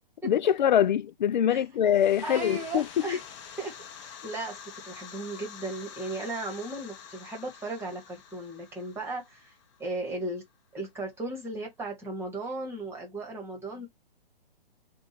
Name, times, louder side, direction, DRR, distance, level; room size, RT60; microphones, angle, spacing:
voice 1, 0.2-3.1, left 9 dB, 50° left, 0.4 m, -24 dB
sound 1, 1.8-10.4, left 8 dB, 30° left, 0.9 m, -47 dB
voice 2, 2.2-3.2 3.6-3.7 4.0-4.6 4.8-9.5 9.8-10.4 10.7-13.9, right 2 dB, 10° right, 1.3 m, -36 dB
3.8 x 2.4 x 4.0 m
hypercardioid pair, 145°, 30 cm